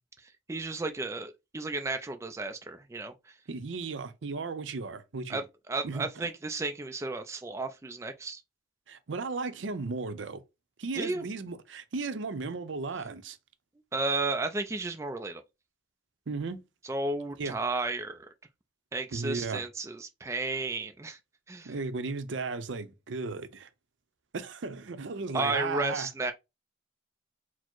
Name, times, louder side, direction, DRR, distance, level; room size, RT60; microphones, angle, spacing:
voice 1, 0.5-3.3 5.3-8.4 11.0-11.2 13.9-15.4 16.8-18.3 18.9-21.2 21.5-21.7 25.3-26.3, right 3 dB, 15° right, 0.3 m, -33 dB
voice 2, 3.5-5.4 5.8-6.3 8.9-10.4 10.8-13.4 16.3-16.6 17.4-17.5 19.1-19.6 21.6-23.7 24.3-26.1, right 4 dB, 75° right, 0.6 m, -35 dB
4.4 x 2.0 x 4.4 m
head